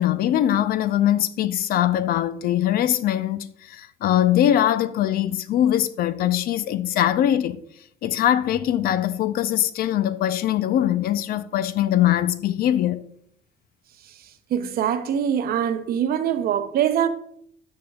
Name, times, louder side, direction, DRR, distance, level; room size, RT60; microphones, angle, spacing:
voice 1, 0.0-7.6 8.0-13.0, left 11 dB, 65° left, 0.5 m, -22 dB
voice 2, 14.5-17.1, right 9 dB, 65° right, 0.7 m, -23 dB
13.0 x 5.2 x 2.3 m
cardioid pair, 110°, 17 cm